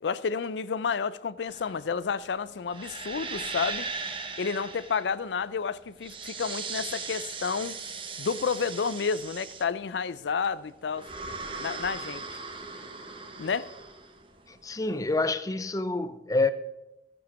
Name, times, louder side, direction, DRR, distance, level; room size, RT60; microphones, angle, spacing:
voice 1, 0.0-3.9 4.4-7.8 8.2-11.1 11.6-12.2 13.4-13.7, left 5 dB, 85° left, 0.5 m, -30 dB
sound 1, 1.5-15.1, right 4 dB, 30° right, 0.9 m, -38 dB
voice 2, 14.5-16.5, left 3 dB, 20° left, 0.5 m, -27 dB
13.5 x 7.0 x 5.9 m
head